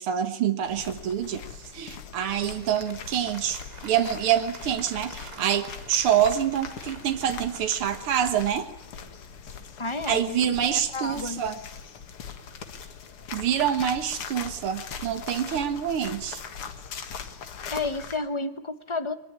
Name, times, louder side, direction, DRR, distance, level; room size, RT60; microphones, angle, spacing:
voice 1, 0.0-8.7 10.1-11.6 13.3-16.4, right 9 dB, 80° right, 8 dB, 2.3 m, -26 dB
sound 1, 0.6-18.2, left 6 dB, 85° left, 2.6 m, -41 dB
Applause, 2.5-9.3, right 2 dB, 20° right, 2.2 m, -48 dB
voice 2, 9.8-11.4 17.7-19.2, left 3 dB, 40° left, 9 dB, 0.4 m, -31 dB
22.0 x 20.0 x 9.6 m, 0.74 s
omnidirectional pair, 2.4 m